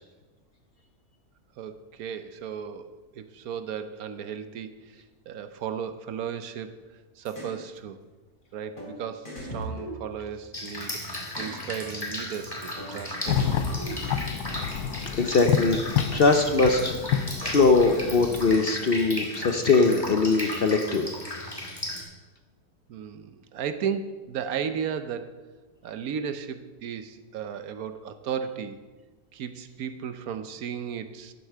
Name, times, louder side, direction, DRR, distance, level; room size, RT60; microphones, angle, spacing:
voice 1, 1.6-6.8 7.2-8.0 8.5-11.0 11.4-13.7 22.9-25.4 25.8-28.8 29.3-31.3, right 7 dB, 70° right, 11 dB, 1.2 m, -35 dB
sound 1, 7.2-7.6 8.8-8.9 9.2-10.7 11.3-11.6 12.8-12.9 13.2-14.3, right 1 dB, 30° left, 3.0 m, -38 dB
Drip, 10.5-22.0, left 1 dB, 15° left, 2.1 m, -36 dB
sound 2, 13.3-18.5, left 8 dB, 85° left, 1.2 m, -29 dB
voice 2, 15.1-15.8 16.1-21.1, left 3 dB, 50° left, 7 dB, 0.8 m, -22 dB
11.0 x 8.1 x 6.7 m, 1.3 s
omnidirectional pair, 1.6 m